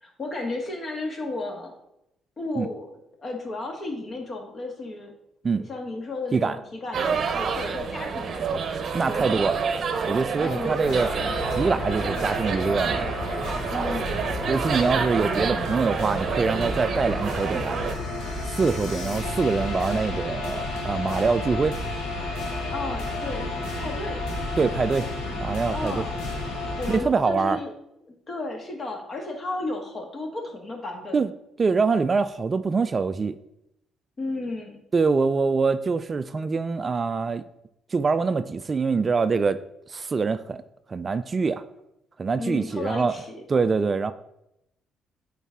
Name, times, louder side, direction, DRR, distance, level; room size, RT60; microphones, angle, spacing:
voice 1, 0.0-1.7 2.4-2.9 3.2-5.1 5.5-8.6 9.1-9.5 10.4-11.0 13.7-14.3 22.7-24.2 25.7-26.3 26.8-27.7 28.1-31.2 34.2-34.8 42.4-43.4, left 2 dB, 40° left, 2 dB, 1.7 m, -33 dB
sound 1, 6.9-17.9, right 5 dB, 50° right, 0.7 m, -28 dB
voice 2, 8.9-9.6 10.0-11.1 11.5-13.1 14.5-17.8 18.5-21.8 24.6-25.1 25.4-26.0 26.9-27.6 31.1-31.3 31.6-33.3 34.9-37.4 37.9-39.6 39.9-40.6 40.9-41.6 42.2-43.1 43.5-44.1, right 4 dB, 35° right, 12 dB, 0.3 m, -24 dB
sound 2, 10.8-27.0, left 2 dB, 85° left, 1.4 m, -31 dB
8.4 x 4.1 x 3.6 m, 0.83 s
cardioid pair, 85°, 0 cm